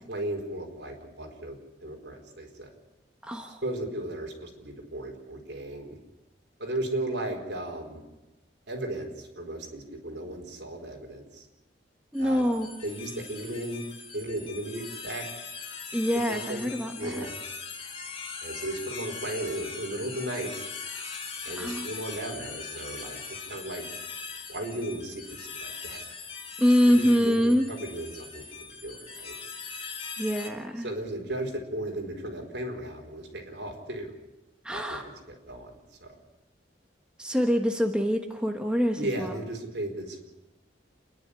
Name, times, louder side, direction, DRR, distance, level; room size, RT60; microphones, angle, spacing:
voice 1, 0.1-2.7 3.6-6.0 6.6-8.0 8.7-11.5 12.2-12.5 12.8-13.8 14.1-15.3 16.3-16.7 17.0-17.4 18.4-20.5 21.4-23.9 24.5-26.0 26.9-29.4 30.8-34.1 34.7-36.2 39.0-40.3, right 1 dB, 65° right, 2 dB, 4.4 m, -36 dB
voice 2, 3.2-3.6 12.1-12.7 15.9-17.3 21.6-21.9 26.6-27.7 30.2-30.9 34.6-35.0 37.2-39.3, equal, 5° right, 3 dB, 1.3 m, -25 dB
sound 1, 12.1-30.5, left 5 dB, 30° left, 2.8 m, -40 dB
28.5 x 11.0 x 9.9 m, 1.0 s
head